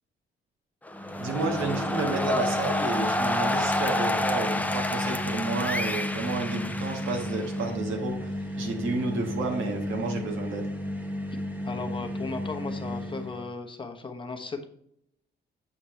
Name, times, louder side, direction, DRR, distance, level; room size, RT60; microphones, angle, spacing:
sound 1, 0.8-7.7, left 1 dB, 10° left, 0.6 m, -29 dB
sound 2, 0.9-13.5, left 1 dB, 10° right, 1.0 m, -34 dB
voice 1, 1.2-10.7, right 3 dB, 80° right, 2 dB, 1.6 m, -31 dB
voice 2, 11.6-14.7, left 4 dB, 25° left, 3 dB, 1.0 m, -36 dB
8.3 x 5.1 x 3.2 m, 0.74 s
cardioid pair, 90°, 20 cm